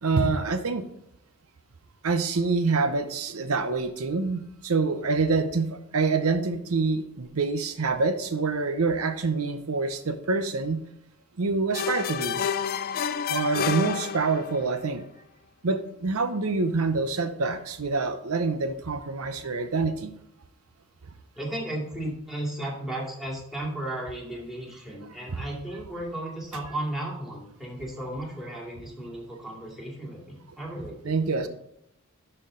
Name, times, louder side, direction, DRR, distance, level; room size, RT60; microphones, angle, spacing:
voice 1, 0.0-0.8 2.0-10.8 11.4-12.4 13.3-15.0 15.6-20.1 31.0-31.5, right 4 dB, 85° right, 8 dB, 0.8 m, -26 dB
sound 1, 11.7-14.7, left 7 dB, 45° left, 0.4 m, -29 dB
voice 2, 21.4-31.5, right 1 dB, ahead, -3 dB, 2.3 m, -35 dB
12.0 x 4.5 x 3.8 m, 0.76 s
head